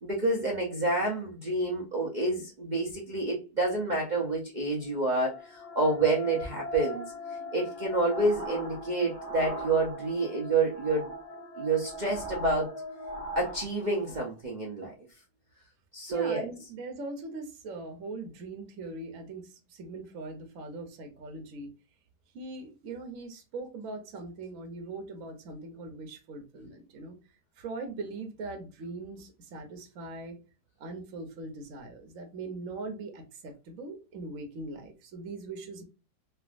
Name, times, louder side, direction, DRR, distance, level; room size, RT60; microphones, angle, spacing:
voice 1, 0.0-7.1 7.5-11.1 11.6-12.7 13.4-14.9 15.9-16.5, right 2 dB, 75° right, 0.4 m, -28 dB
sound 1, 4.8-14.1, left 2 dB, 75° left, 1.2 m, -42 dB
sound 2, 7.7-10.3 10.6-14.2, right 1 dB, 40° left, 0.5 m, -41 dB
voice 2, 16.1-21.7 22.3-27.2 27.6-30.4 30.8-35.8, right 3 dB, 60° right, 1.0 m, -41 dB
3.2 x 2.5 x 2.4 m
omnidirectional pair, 1.8 m